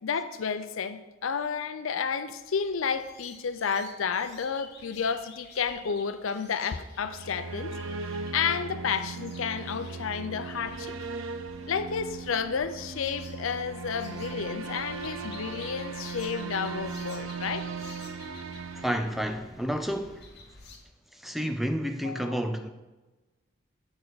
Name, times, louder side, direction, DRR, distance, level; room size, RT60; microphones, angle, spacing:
voice 1, 0.0-7.7 8.1-10.9 11.7-17.7 22.0-22.4, left 6 dB, 75° left, 0.5 m, -31 dB
sound 1, 2.4-20.8, left 4 dB, 50° left, 1.2 m, -52 dB
sound 2, 6.9-19.8, right 4 dB, 70° right, 0.5 m, -38 dB
voice 2, 18.7-20.3 21.1-22.7, equal, ahead, 0.3 m, -30 dB
7.9 x 6.7 x 4.0 m
head